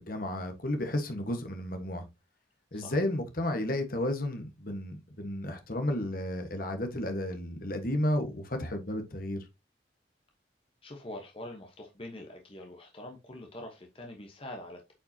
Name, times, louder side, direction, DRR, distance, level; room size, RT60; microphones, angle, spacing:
voice 1, 0.0-2.0 2.7-9.4, left 1 dB, 50° left, 1.4 m, -32 dB
voice 2, 10.8-14.9, left 1 dB, 30° left, 1.1 m, -44 dB
8.5 x 5.2 x 2.8 m
head